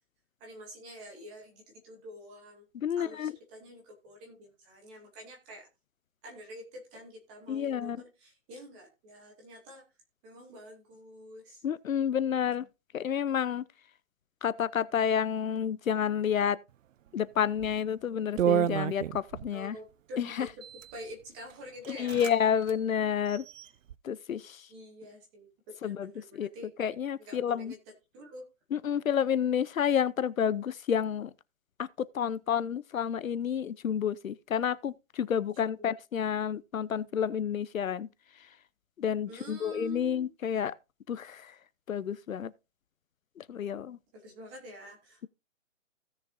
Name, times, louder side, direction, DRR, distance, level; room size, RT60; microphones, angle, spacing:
voice 1, 0.4-2.6 3.0-5.7 6.2-9.8 10.2-11.6 19.5-20.6 20.9-22.3 24.7-26.7 27.3-27.8 28.1-28.5 35.6-35.9 39.2-40.3 44.1-45.3, equal, 5° right, 0.9 m, -47 dB
voice 2, 2.8-3.3 7.5-8.0 11.6-12.7 12.9-13.6 14.4-16.6 17.1-19.8 20.2-20.5 21.9-23.4 24.0-24.7 25.8-26.5 26.8-27.7 28.7-31.3 31.8-38.1 39.0-40.7 41.1-41.5 41.9-42.5 43.4-44.0, left 8 dB, 75° left, 0.8 m, -30 dB
sound 1, 17.5-17.8 18.4-19.5 20.5-20.9 21.5-21.6 21.8-22.4 22.6-22.8 23.3-23.9, right 10 dB, 70° right, 0.5 m, -30 dB
16.0 x 6.6 x 2.6 m
hypercardioid pair, 170°, 41 cm